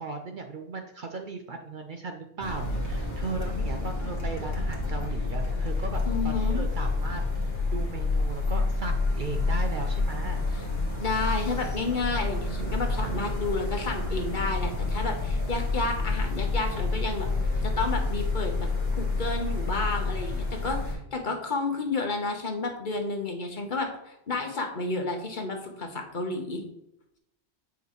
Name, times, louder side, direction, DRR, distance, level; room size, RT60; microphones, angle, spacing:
voice 1, 0.0-10.5 20.9-21.0, right 4 dB, 55° right, 5 dB, 0.6 m, -37 dB
sound 1, 2.4-20.9, left 3 dB, 25° left, 1.6 m, -29 dB
voice 2, 6.0-6.6 11.0-17.3 17.6-18.7 19.0-26.6, left 3 dB, 45° left, 3 dB, 1.1 m, -31 dB
7.7 x 5.0 x 3.1 m, 0.79 s
omnidirectional pair, 1.2 m